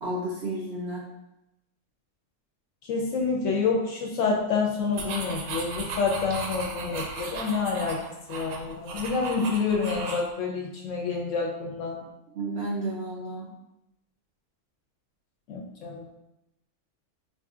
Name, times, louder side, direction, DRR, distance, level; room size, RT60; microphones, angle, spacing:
voice 1, 0.0-1.0 12.3-13.5, right 1 dB, 60° right, -4 dB, 0.7 m, -32 dB
voice 2, 2.8-8.0 8.3-12.0 15.5-16.0, left 4 dB, 65° left, 0 dB, 0.9 m, -28 dB
sound 1, 4.9-10.3, right 3 dB, 80° right, 1.1 m, -36 dB
4.5 x 2.6 x 2.4 m, 0.89 s
omnidirectional pair, 1.6 m